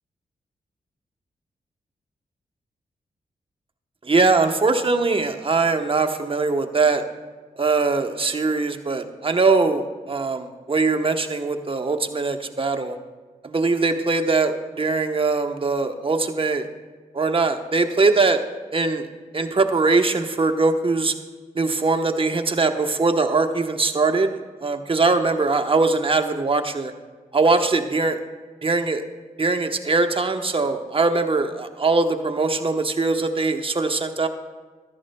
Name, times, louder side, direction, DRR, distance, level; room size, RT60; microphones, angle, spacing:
voice 1, 4.0-7.0 7.6-13.0 13.4-16.7 17.1-18.4 18.7-19.1 19.3-21.1 21.5-26.9 27.3-28.2 28.6-29.0 29.4-34.3, right 3 dB, 35° right, 6 dB, 1.0 m, -21 dB
13.5 x 11.5 x 2.2 m, 1.4 s
supercardioid pair, 45°, 15 cm